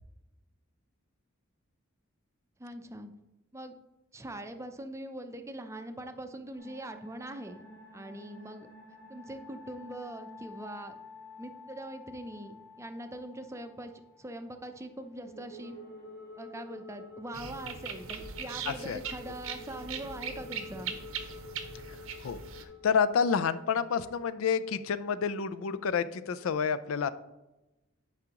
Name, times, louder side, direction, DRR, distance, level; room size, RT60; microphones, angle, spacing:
voice 1, 2.6-3.1 3.5-3.7 4.1-7.6 7.9-8.7 9.1-10.9 11.4-13.9 14.2-15.8 16.4-21.0, right 1 dB, 15° right, 7 dB, 0.5 m, -42 dB
sound 1, 6.6-26.5, left 3 dB, 55° left, 2.7 m, -50 dB
sound 2, 17.3-22.6, right 6 dB, 85° right, 0.8 m, -40 dB
voice 2, 18.7-19.0 22.2-22.4 22.8-27.1, left 6 dB, 85° left, 15 dB, 0.4 m, -29 dB
10.5 x 4.9 x 2.9 m, 1.0 s
head